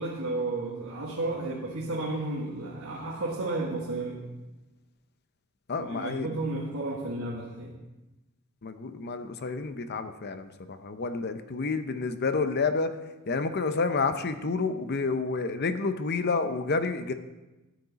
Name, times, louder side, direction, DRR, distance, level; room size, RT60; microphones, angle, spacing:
voice 1, 0.0-4.2 5.7-7.7, right 2 dB, 70° right, -5 dB, 1.6 m, -32 dB
voice 2, 5.7-6.4 8.6-13.0 13.3-17.1, left 4 dB, 50° left, 10 dB, 0.6 m, -29 dB
13.5 x 9.5 x 4.1 m, 1.1 s
head